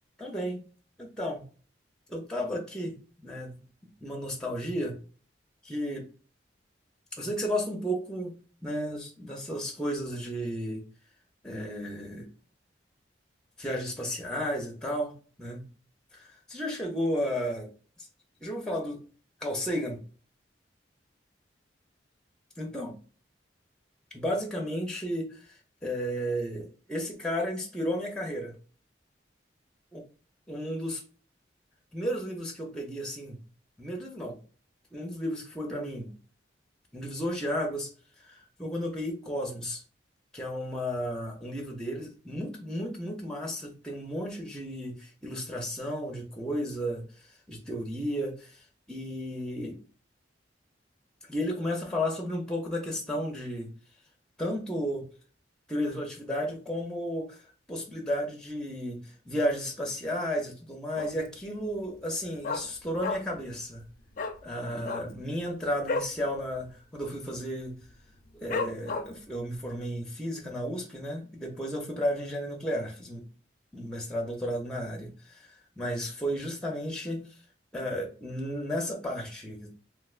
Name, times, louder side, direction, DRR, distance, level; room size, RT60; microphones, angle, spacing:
voice 1, 0.2-0.6 1.0-1.4 2.1-3.6 4.0-5.0 5.6-6.0 7.1-8.3 8.6-10.8 11.4-12.3 13.6-15.6 16.1-17.7 18.4-19.0 19.4-20.0 22.6-22.9 24.1-28.6 29.9-30.0 30.5-31.0 31.9-33.4 33.8-34.4 34.9-36.1 36.9-37.9 38.3-39.8 40.3-47.0 47.5-48.6 48.9-49.8 51.3-53.7 54.4-55.0 55.7-57.4 57.7-63.8 64.4-67.8 68.4-73.3 73.7-75.5 75.8-77.2 77.7-79.8, equal, 5° left, 0 dB, 0.6 m, -33 dB
Dog, 61.0-61.4 61.7-61.8 62.0-63.5 63.7-63.9 64.1-64.4 64.8-66.2 66.5-66.7 67.0-67.4 67.8-67.9 68.5-69.3 69.8-69.9, left 3 dB, 45° left, 0.4 m, -33 dB
3.3 x 2.6 x 2.4 m, 0.39 s
head